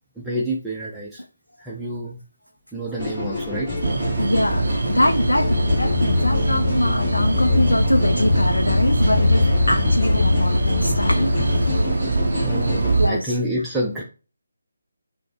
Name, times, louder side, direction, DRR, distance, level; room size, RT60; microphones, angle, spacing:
voice 1, 0.2-1.2 1.6-2.2 2.7-3.7 12.4-14.0, right 1 dB, 5° right, 0.4 m, -28 dB
sound 1, 3.0-13.0, left 2 dB, 20° left, 1.6 m, -29 dB
sound 2, 3.6-11.8, left 3 dB, 50° left, 0.7 m, -23 dB
sound 3, 3.8-13.1, right 3 dB, 55° right, 0.5 m, -24 dB
voice 2, 4.2-11.9 13.0-13.4, left 1 dB, 75° left, 0.4 m, -24 dB
5.9 x 2.1 x 3.1 m
figure-of-eight pair, 150°, 0 cm